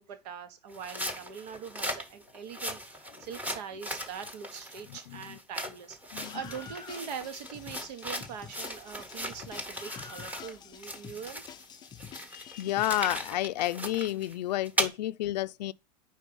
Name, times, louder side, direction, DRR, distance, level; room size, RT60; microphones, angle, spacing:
voice 1, 0.0-11.4, right 7 dB, 70° right, 1.4 m, -42 dB
sound 1, 0.7-10.5 10.8-14.9, equal, 5° right, 1.2 m, -38 dB
voice 2, 4.9-5.4 6.1-6.4 12.3-15.7, left 14 dB, 85° left, 0.4 m, -31 dB
Screaming, 6.2-13.2, left 7 dB, 20° left, 0.5 m, -48 dB
4.6 x 4.3 x 5.3 m
supercardioid pair, 125°, 21 cm